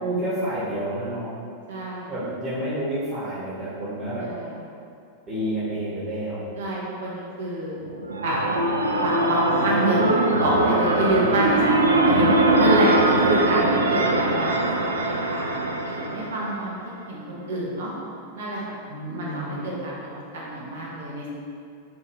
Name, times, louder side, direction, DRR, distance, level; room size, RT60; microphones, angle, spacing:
voice 1, 0.0-1.3 2.1-4.3 5.3-6.5 18.9-19.7, right 1 dB, 30° right, -10 dB, 1.2 m, -29 dB
voice 2, 1.7-2.1 4.2-4.5 6.5-7.8 8.2-8.5 9.0-12.3 12.5-12.9 13.2-16.7 17.1-17.9 18.3-18.7 19.0-21.3, right 1 dB, 60° right, -5 dB, 0.9 m, -27 dB
sound 1, 7.8-16.6, right 2 dB, 75° right, 0.3 m, -21 dB
4.6 x 2.7 x 3.1 m, 2.4 s
figure-of-eight pair, 90°, 0 cm